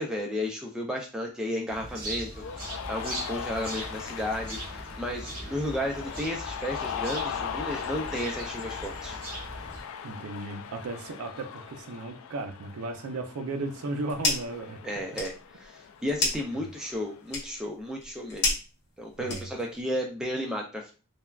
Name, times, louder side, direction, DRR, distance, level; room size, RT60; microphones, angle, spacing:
voice 1, 0.0-9.2 14.8-18.6 19.0-20.9, left 1 dB, 5° right, 0.3 m, -33 dB
sound 1, 1.7-9.8, right 1 dB, 45° right, 0.9 m, -40 dB
Cheering, 2.4-17.2, left 7 dB, 75° left, 0.3 m, -39 dB
voice 2, 10.0-14.8 16.6-16.7 19.2-19.5, right 2 dB, 85° right, 0.4 m, -35 dB
sound 2, 13.7-14.6 14.9-19.8, left 2 dB, 50° left, 1.0 m, -32 dB
3.3 x 2.2 x 2.2 m
head